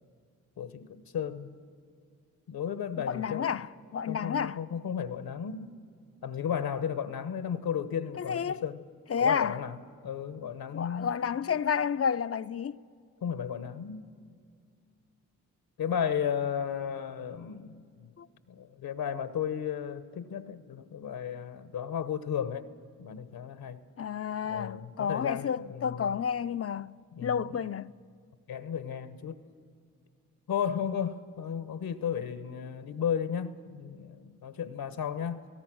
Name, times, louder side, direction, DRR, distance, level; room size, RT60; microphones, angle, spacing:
voice 1, 0.6-1.5 2.5-3.6 4.1-5.7 6.2-8.8 9.2-9.8 10.0-11.1 13.2-14.1 15.8-18.1 18.5-22.6 23.0-23.8 24.5-26.2 27.1-27.4 28.5-29.4 30.5-35.5, left 8 dB, 75° left, 1.1 m, -34 dB
voice 2, 3.0-4.6 8.2-8.6 9.1-9.6 10.7-12.8 18.2-18.3 24.0-27.9, left 7 dB, 40° left, 0.5 m, -31 dB
28.5 x 17.5 x 6.2 m
supercardioid pair, 45°, 36 cm